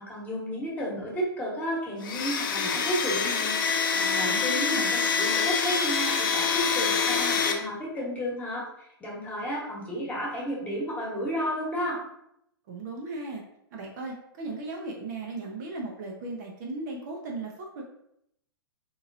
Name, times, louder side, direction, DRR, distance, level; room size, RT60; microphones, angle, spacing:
voice 1, 0.0-3.6 3.9-8.6 9.0-12.0, equal, 10° left, -5 dB, 1.3 m, -32 dB
Domestic sounds home sounds, 2.0-7.5, left 5 dB, 55° left, 0.6 m, -26 dB
voice 2, 4.2-4.9 12.7-13.4 13.7-17.8, right 3 dB, 45° right, 0 dB, 0.7 m, -37 dB
3.6 x 3.0 x 2.7 m, 0.76 s
figure-of-eight pair, 110°, 13 cm